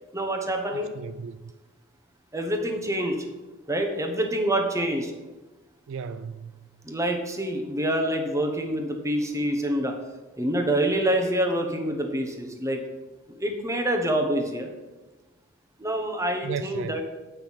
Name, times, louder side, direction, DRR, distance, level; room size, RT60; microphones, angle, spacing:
voice 1, 0.1-0.9 2.3-3.2 3.7-5.1 6.8-10.0 10.4-12.8 13.4-14.7 15.8-17.0, right 1 dB, 15° right, 3 dB, 1.1 m, -26 dB
voice 2, 0.7-1.4 5.9-6.7 16.4-17.0, right 6 dB, 65° right, 11 dB, 0.3 m, -35 dB
9.0 x 5.7 x 5.7 m, 1.2 s
head